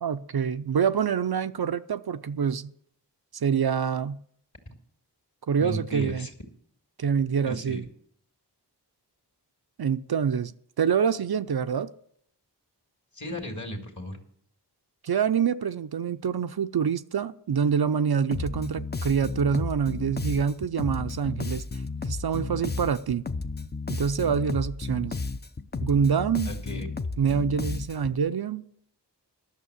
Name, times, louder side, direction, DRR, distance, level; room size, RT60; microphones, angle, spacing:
voice 1, 0.0-2.7 3.3-4.2 5.5-6.3 7.0-7.8 9.8-11.9 15.0-21.6 22.0-23.3 23.9-25.2 25.8-26.5 27.2-28.6, right 7 dB, 60° right, 0.5 m, -26 dB
voice 2, 5.6-6.3 7.5-7.8 13.1-14.2 26.5-26.9, equal, 45° left, 2.2 m, -35 dB
Bass guitar, 18.3-28.2, left 3 dB, 25° left, 0.5 m, -33 dB
11.5 x 6.5 x 8.0 m
wide cardioid pair, 45°, 42 cm